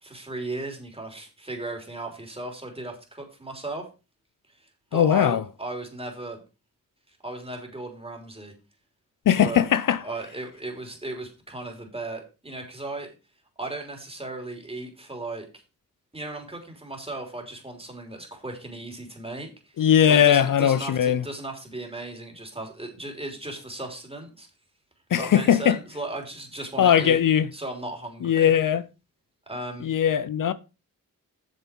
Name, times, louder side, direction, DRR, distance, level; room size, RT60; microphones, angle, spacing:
voice 1, 0.0-3.9 4.9-6.4 7.2-8.5 9.4-9.7 10.0-13.1 13.6-15.6 16.1-19.7 20.1-24.5 25.1-27.2 27.5-28.5 29.5-29.9, right 2 dB, 15° right, 3.3 m, -36 dB
voice 2, 4.9-5.4 9.3-10.0 19.8-21.2 25.1-25.8 26.8-27.5 28.2-28.8 29.8-30.5, left 9 dB, 70° left, 0.6 m, -20 dB
8.1 x 6.9 x 4.5 m
cardioid pair, 65°, 34 cm